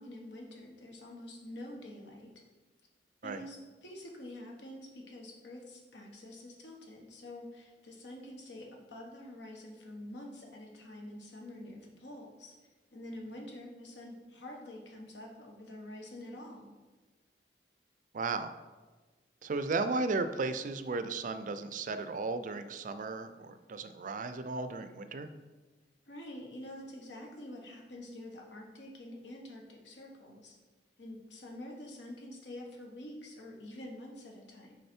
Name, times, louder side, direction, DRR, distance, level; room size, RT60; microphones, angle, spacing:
voice 1, 0.0-2.3 3.2-12.5 12.9-16.7 26.1-30.6 31.0-34.8, left 1 dB, 80° left, 0 dB, 1.2 m, -47 dB
voice 2, 18.1-18.5 19.4-25.3, right 3 dB, 45° right, 10 dB, 0.4 m, -35 dB
6.5 x 4.9 x 4.4 m, 1.3 s
head